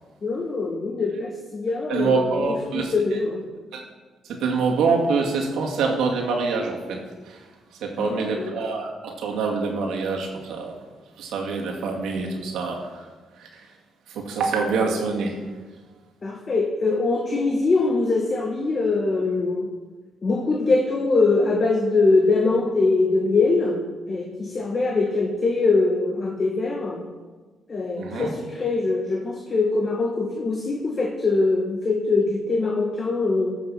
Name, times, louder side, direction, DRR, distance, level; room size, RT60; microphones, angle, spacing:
voice 1, 0.2-3.5 8.0-8.5 16.2-19.7 20.2-27.1 27.7-33.6, left 3 dB, 35° left, 2 dB, 1.4 m, -23 dB
voice 2, 1.9-2.9 3.7-3.8 4.3-7.0 7.3-7.4 7.8-10.7 11.2-13.0 13.4-13.5 14.1-15.4 28.0-28.3, right 4 dB, 85° right, 1 dB, 2.3 m, -25 dB
15.0 x 6.5 x 5.7 m, 1.3 s
cardioid pair, 90°, 0 cm